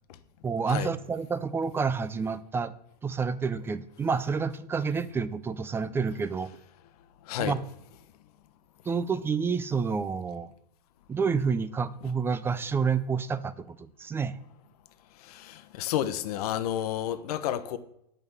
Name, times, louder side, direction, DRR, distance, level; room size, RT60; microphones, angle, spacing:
voice 1, 0.4-2.7 3.0-6.5 7.4-7.6 8.9-10.5 11.1-14.4, right 5 dB, 10° right, 0.4 m, -29 dB
voice 2, 7.2-7.6 15.1-17.8, left 11 dB, 65° left, 0.9 m, -31 dB
8.9 x 5.5 x 8.0 m
supercardioid pair, 135°, 21 cm